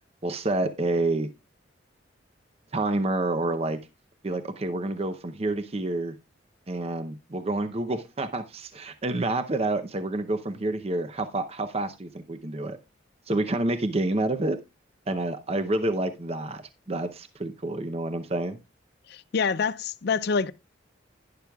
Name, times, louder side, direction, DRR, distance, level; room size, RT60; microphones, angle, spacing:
voice 1, 0.2-1.3 2.7-3.8 4.2-6.1 6.7-12.8 13.3-14.6 15.1-18.6, right 2 dB, 30° right, 0.7 m, -28 dB
voice 2, 19.1-20.5, left 5 dB, 55° left, 0.4 m, -26 dB
11.5 x 10.5 x 2.3 m
head